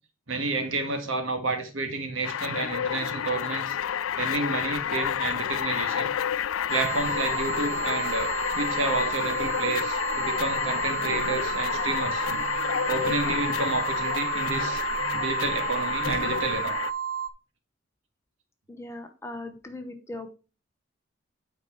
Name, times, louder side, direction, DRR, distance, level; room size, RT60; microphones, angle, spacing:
voice 1, 0.3-3.8 4.2-6.1 6.7-12.4 12.9-14.8 15.1-16.7, right 3 dB, 85° right, 6 dB, 1.6 m, -30 dB
sound 1, 2.2-16.9, left 9 dB, 85° left, 0.4 m, -30 dB
sound 2, 6.7-17.3, right 8 dB, 65° right, 0.5 m, -32 dB
Buzz, 6.8-16.7, equal, 30° right, 1.4 m, -44 dB
voice 2, 18.7-20.3, left 2 dB, 15° left, 6 dB, 0.9 m, -39 dB
8.6 x 4.6 x 4.3 m, 0.33 s
head